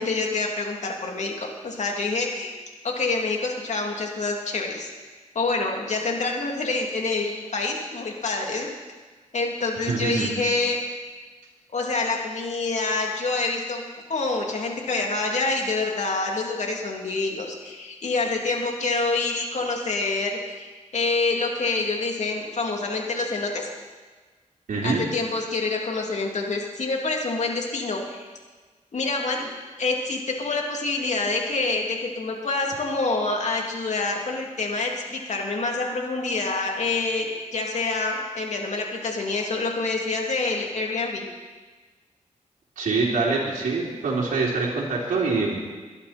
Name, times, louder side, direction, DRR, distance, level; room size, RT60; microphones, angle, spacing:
voice 1, 0.0-2.5 2.8-4.9 5.3-8.7 9.3-10.8 11.7-13.8 14.1-23.7 24.8-28.3 28.9-29.5 29.8-41.3, left 3 dB, 60° left, 0 dB, 3.0 m, -27 dB
voice 2, 9.8-10.4 24.7-25.0 42.7-45.5, right 3 dB, 80° right, -6 dB, 3.4 m, -25 dB
23.0 x 11.5 x 4.4 m, 1.4 s
cardioid pair, 65°, 13 cm